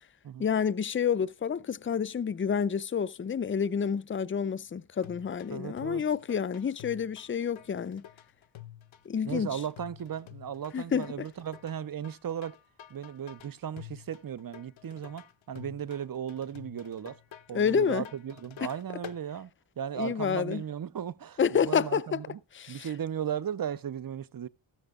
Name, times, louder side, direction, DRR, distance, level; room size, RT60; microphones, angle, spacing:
voice 1, 0.4-8.0 9.1-9.5 10.7-11.1 17.5-18.0 20.0-20.6 21.4-22.0 22.5-22.9, left 7 dB, 25° left, 0.5 m, -29 dB
sound 1, 5.0-19.2, left 11 dB, 75° left, 0.8 m, -49 dB
voice 2, 5.5-6.0 9.2-12.6 12.9-17.2 17.5-19.5 19.8-22.4 22.7-24.5, right 9 dB, 45° right, 0.7 m, -36 dB
14.0 x 13.5 x 2.4 m
cardioid pair, 60°, 48 cm